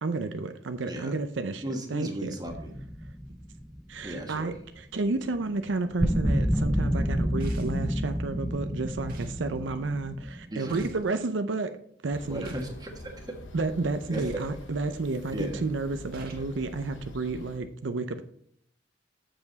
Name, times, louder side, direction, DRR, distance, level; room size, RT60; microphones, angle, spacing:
voice 1, 0.0-1.6 1.9-2.3 3.9-11.7 12.0-12.5 13.5-18.2, right 3 dB, 80° right, 8 dB, 0.6 m, -31 dB
voice 2, 1.6-2.8 4.0-4.5 10.4-10.8 12.3-13.4 14.1-14.5 15.3-15.7, right 1 dB, 20° right, 2 dB, 1.4 m, -35 dB
sound 1, 2.5-4.4 6.0-10.5, equal, ahead, 0.5 m, -29 dB
sound 2, 7.4-7.9 9.1-9.4 10.7-11.1 12.4-12.8 14.1-14.5 16.1-16.5, right 1 dB, 55° right, 1.7 m, -45 dB
sound 3, 12.1-17.6, left 1 dB, 85° left, 1.0 m, -46 dB
7.7 x 7.0 x 4.0 m, 0.67 s
head